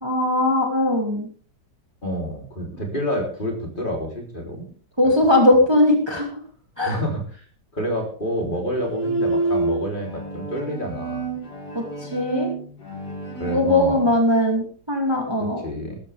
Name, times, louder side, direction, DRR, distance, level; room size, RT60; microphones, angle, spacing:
voice 1, 0.0-1.3 5.0-6.3 6.8-6.9 11.7-12.5 13.5-15.6, left 1 dB, 15° right, 1 dB, 2.7 m, -19 dB
voice 2, 2.0-4.7 5.0-5.3 6.9-7.5 7.7-11.3 13.4-14.1 15.4-16.0, equal, 30° left, 1 dB, 3.8 m, -28 dB
Bowed string instrument, 8.6-13.6, right 3 dB, 75° left, 4.7 m, -28 dB
18.5 x 13.5 x 3.5 m, 0.41 s
omnidirectional pair, 1.8 m